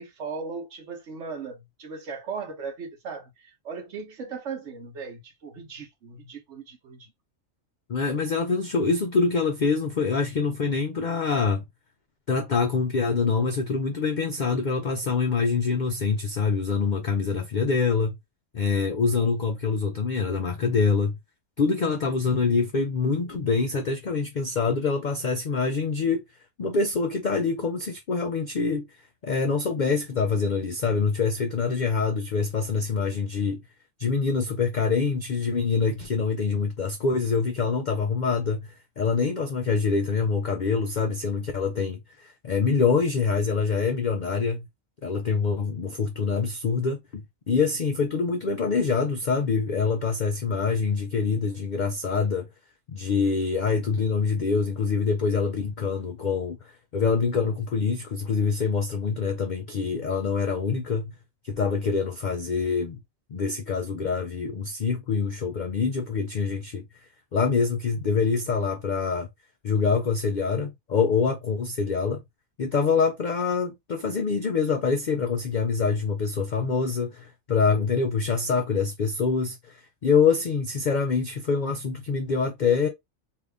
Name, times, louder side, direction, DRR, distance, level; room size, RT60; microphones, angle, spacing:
voice 1, 0.0-7.1, right 5 dB, 65° right, 1.2 m, -37 dB
voice 2, 7.9-11.6 12.3-18.2 18.5-21.1 21.6-26.2 26.6-28.8 29.2-33.6 34.0-44.7 45.0-52.5 52.9-56.6 56.9-61.1 61.4-63.0 63.3-66.8 67.3-69.3 69.6-72.2 72.6-82.9, left 5 dB, 65° left, 0.4 m, -25 dB
2.8 x 2.5 x 3.3 m
omnidirectional pair, 1.4 m